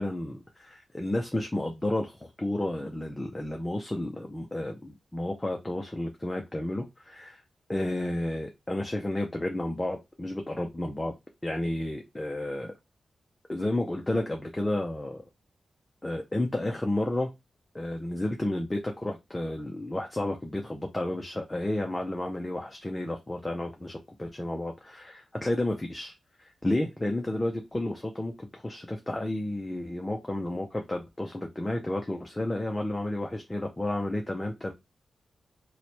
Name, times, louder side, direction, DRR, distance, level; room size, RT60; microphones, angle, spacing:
voice 1, 0.0-7.4 7.7-11.1 11.4-12.7 13.5-15.2 16.0-17.3 17.7-26.1 26.6-34.7, left 1 dB, 15° left, 0.4 m, -31 dB
3.0 x 2.1 x 4.2 m
wide cardioid pair, 165°, 0 cm